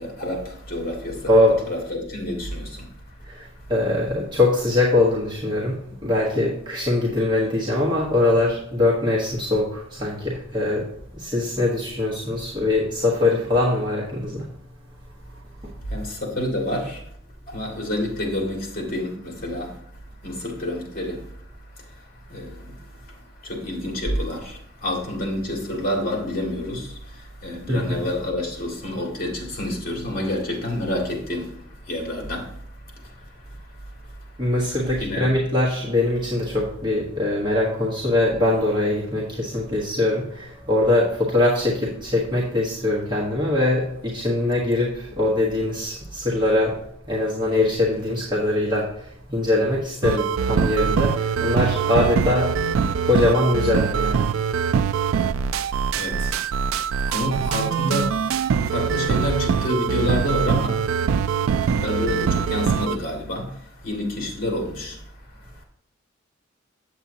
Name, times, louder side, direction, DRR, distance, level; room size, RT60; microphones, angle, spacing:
voice 1, 0.0-1.3 1.7-2.9 15.9-17.0 17.5-19.8 20.2-21.3 21.8-34.4 35.0-35.3 56.0-56.4 57.1-58.2 58.6-61.3 61.6-65.6, left 1 dB, 45° left, 2.2 m, -29 dB
voice 2, 1.3-1.6 3.3-3.4 3.7-10.9 11.2-14.5 27.7-28.1 34.4-46.7 47.1-52.5 53.0-54.2, left 2 dB, 25° right, 1.4 m, -22 dB
sound 1, 50.0-63.0, right 7 dB, 90° right, 0.3 m, -23 dB
8.0 x 7.4 x 2.8 m
head